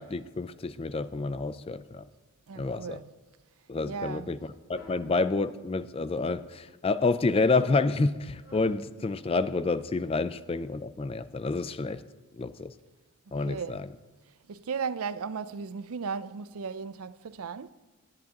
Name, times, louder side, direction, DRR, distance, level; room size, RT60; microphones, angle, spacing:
voice 1, 0.0-2.0 2.6-3.0 3.7-4.4 4.7-12.0 12.4-12.7 13.3-13.8, left 3 dB, 25° left, 0.4 m, -28 dB
voice 2, 2.5-3.1 3.9-4.4 13.3-13.9 14.5-17.7, right 5 dB, 70° right, 0.5 m, -36 dB
sound 1, 4.7-5.1 5.7-6.4 7.1-7.4 8.3-8.8, equal, 75° left, 4.5 m, -52 dB
17.5 x 10.5 x 2.9 m
head